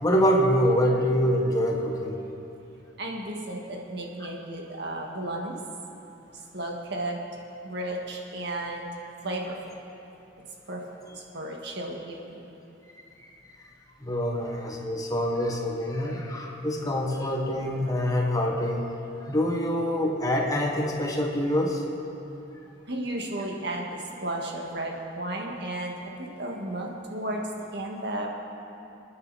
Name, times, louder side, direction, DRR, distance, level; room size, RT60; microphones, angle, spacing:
voice 1, 0.0-2.2 14.0-18.9 19.3-21.8, equal, 20° left, 0 dB, 1.4 m, -25 dB
voice 2, 3.0-5.6 6.5-7.2 7.6-8.9 9.2-9.6 10.7-10.8 11.3-12.4 22.9-27.4 27.7-28.3, right 1 dB, 60° right, 0 dB, 1.8 m, -33 dB
29.0 x 9.7 x 4.2 m, 2.9 s
head